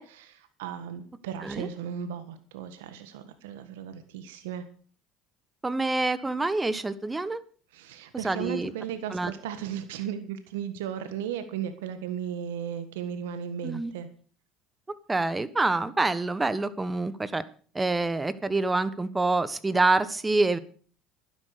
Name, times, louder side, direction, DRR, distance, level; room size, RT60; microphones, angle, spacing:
voice 1, 0.0-4.6 7.7-14.1, right 8 dB, 85° right, 10 dB, 1.5 m, -36 dB
voice 2, 5.6-7.4 8.2-8.7 9.1-9.3 13.6-13.9 15.1-17.4 17.7-20.6, right 3 dB, 15° right, 15 dB, 1.3 m, -26 dB
11.5 x 11.0 x 6.7 m, 0.43 s
supercardioid pair, 85°, 0 cm